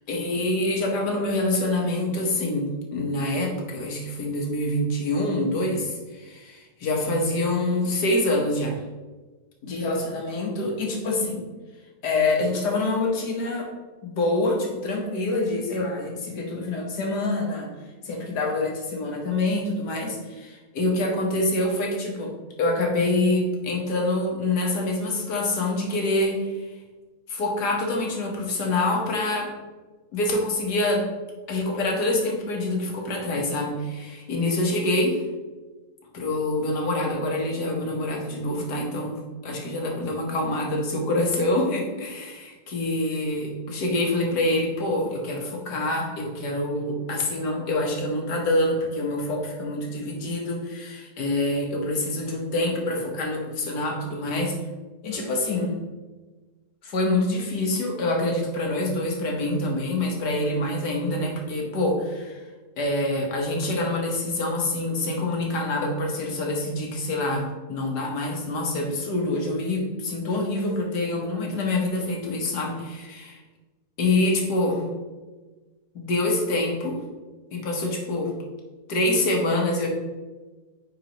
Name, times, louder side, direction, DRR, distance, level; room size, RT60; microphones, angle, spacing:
voice 1, 0.1-8.8 9.6-11.5 12.0-13.7 14.0-17.7 18.0-22.3 22.6-26.6 27.3-29.5 30.1-31.1 31.5-35.2 36.1-54.5 55.0-55.8 56.8-62.4 62.8-73.4 74.0-74.9 75.9-77.0 77.5-78.3 78.9-79.9, left 2 dB, 80° left, 0 dB, 1.9 m, -26 dB
9.3 x 4.5 x 3.0 m, 1.3 s
omnidirectional pair, 1.7 m